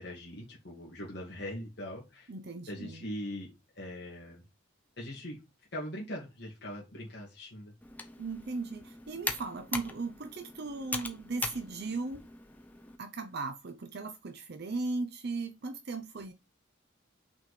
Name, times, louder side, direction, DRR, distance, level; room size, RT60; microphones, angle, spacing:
voice 1, 0.0-2.3 2.7-4.4 5.0-5.4 5.7-7.7, equal, 55° left, 1.9 m, -41 dB
voice 2, 2.3-3.0 8.2-12.2 13.0-16.3, right 3 dB, 55° right, 0.6 m, -37 dB
Computer keyboard, 7.8-13.0, left 3 dB, 10° left, 0.7 m, -41 dB
6.0 x 4.2 x 4.9 m
head